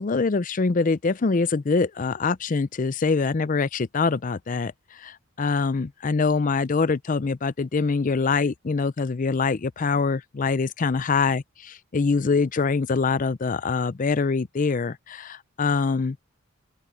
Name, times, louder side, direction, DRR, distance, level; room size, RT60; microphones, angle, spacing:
voice 1, 0.0-16.2, left 4 dB, 40° left, 0.5 m, -24 dB
open air
head